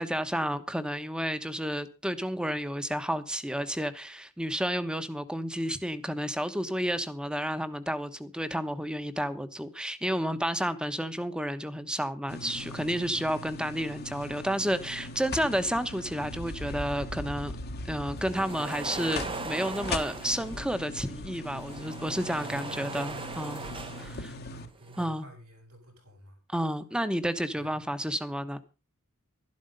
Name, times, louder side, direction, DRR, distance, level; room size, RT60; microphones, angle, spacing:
voice 1, 0.0-17.5 17.9-23.6 24.0-24.3 25.0-25.3 26.5-28.6, equal, 5° right, 1.1 m, -31 dB
sound 1, 12.3-24.7, left 2 dB, 45° left, 1.2 m, -40 dB
sound 2, 18.2-20.7 21.4-24.3 24.7-25.1, right 4 dB, 25° right, 0.9 m, -39 dB
voice 2, 22.4-22.8 24.0-26.4 27.5-27.8, equal, 80° right, 7.5 m, -51 dB
12.5 x 11.5 x 5.4 m
head